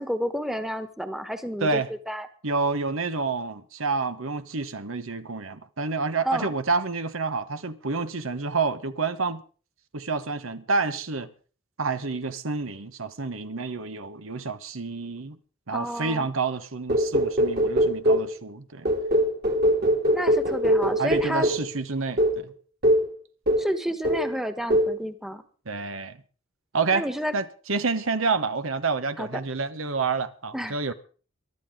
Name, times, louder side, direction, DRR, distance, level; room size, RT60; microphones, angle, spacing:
voice 1, 0.0-2.3 6.2-6.5 15.7-16.3 20.1-21.5 23.6-25.4 26.9-27.3 29.2-29.3 30.5-30.9, equal, ahead, 1.3 m, -30 dB
voice 2, 2.4-9.4 9.9-11.3 11.8-15.4 15.7-18.9 21.0-22.5 25.7-26.2 26.7-27.0 27.3-30.9, right 4 dB, 85° right, 1.1 m, -28 dB
sound 1, 16.9-18.3 18.8-21.7 22.2-22.4 22.8-23.1 23.5-23.8 24.0-24.3 24.7-25.0, equal, 50° right, 2.8 m, -22 dB
23.0 x 12.0 x 3.7 m
head